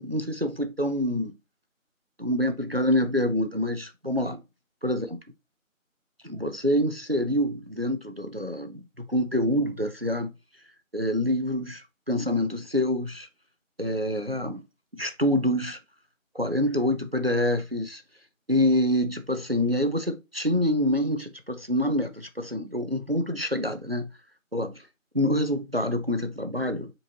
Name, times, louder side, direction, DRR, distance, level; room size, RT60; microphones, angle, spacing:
voice 1, 0.0-1.3 2.2-4.4 4.8-5.1 6.2-10.3 10.9-13.3 13.8-14.6 14.9-15.8 16.3-18.0 18.5-24.1 24.5-24.8 25.1-26.9, left 1 dB, 45° right, 0.5 m, -26 dB
5.1 x 3.0 x 2.6 m
figure-of-eight pair, 180°, 41 cm